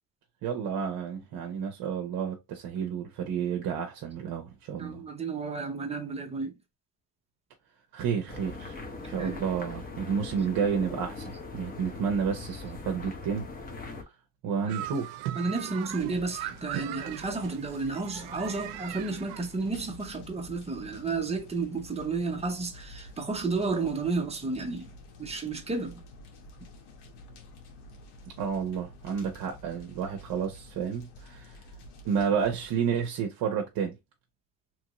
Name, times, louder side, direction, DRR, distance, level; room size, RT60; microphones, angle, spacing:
voice 1, 0.4-5.0 7.9-8.8 9.0-13.5 14.4-15.1 28.4-31.6 32.0-34.0, right 7 dB, 60° right, 0.8 m, -31 dB
voice 2, 4.8-6.6 9.2-9.4 14.7-14.8 15.4-24.9 25.2-26.0, right 3 dB, 15° right, 0.6 m, -32 dB
sound 1, 8.3-14.0, left 3 dB, 20° left, 0.7 m, -40 dB
sound 2, 14.7-19.9, right 12 dB, 90° right, 0.5 m, -39 dB
sound 3, 15.9-32.7, left 1 dB, 70° left, 1.1 m, -50 dB
3.0 x 2.6 x 2.9 m
cardioid pair, 120°, 41 cm